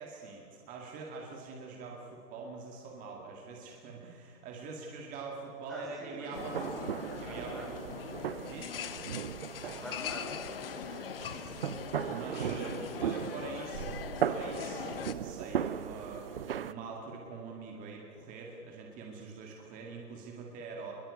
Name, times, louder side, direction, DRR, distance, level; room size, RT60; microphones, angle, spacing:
voice 1, 0.0-7.7 8.5-8.8 11.2-20.9, right 4 dB, 15° right, 0 dB, 2.1 m, -44 dB
voice 2, 5.7-7.7 8.7-9.2 9.6-10.6 11.4-11.7, equal, ahead, -3 dB, 5.0 m, -47 dB
sound 1, 6.3-15.1, left 9 dB, 35° left, 1.0 m, -42 dB
sound 2, 6.3-16.7, right 8 dB, 35° right, 0.7 m, -37 dB
25.0 x 22.0 x 8.4 m, 2.8 s
hypercardioid pair, 145°, 48 cm